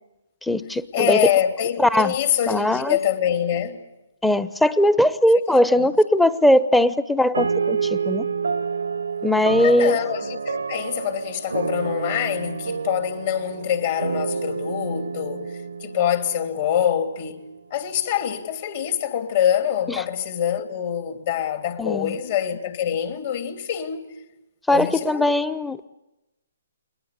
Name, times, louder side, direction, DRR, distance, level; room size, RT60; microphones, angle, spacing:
voice 1, 0.4-1.2 1.8-2.1 2.5-3.0 4.2-8.3 9.2-10.0 19.9-20.0 21.8-22.2 24.7-25.8, left 1 dB, 5° left, 0.8 m, -19 dB
voice 2, 0.9-3.9 5.3-5.9 9.6-15.5 15.8-17.4 17.7-24.1 24.7-25.2, left 10 dB, 50° left, 3.0 m, -25 dB
sound 1, 7.3-17.1, right 5 dB, 80° right, 0.9 m, -28 dB
29.5 x 21.5 x 8.2 m
figure-of-eight pair, 140°, 0 cm